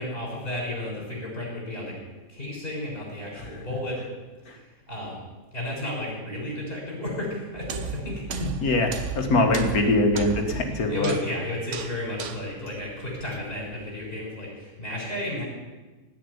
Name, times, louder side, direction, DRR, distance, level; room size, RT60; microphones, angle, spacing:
voice 1, 0.0-1.9 2.3-4.0 4.5-5.2 5.5-8.2 10.9-15.4, left 1 dB, 40° left, -3 dB, 6.2 m, -33 dB
sound 1, 7.6-13.8, right 5 dB, 60° right, 1.1 m, -36 dB
voice 2, 8.3-11.1, left 2 dB, 85° left, 4 dB, 2.2 m, -23 dB
17.0 x 5.9 x 9.7 m, 1.2 s
omnidirectional pair, 1.5 m